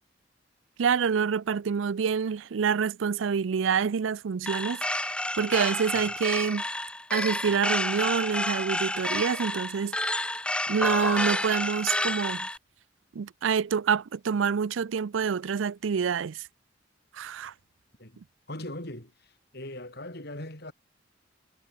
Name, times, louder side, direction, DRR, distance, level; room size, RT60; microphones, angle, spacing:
voice 1, 0.8-5.1 5.4-6.6 7.1-10.2 10.7-12.5 13.2-16.4 17.2-17.5, right 6 dB, 90° right, 0.5 m, -27 dB
sound 1, 4.5-12.6, left 1 dB, 5° left, 1.1 m, -30 dB
voice 2, 18.5-20.7, left 1 dB, 55° left, 7.5 m, -40 dB
head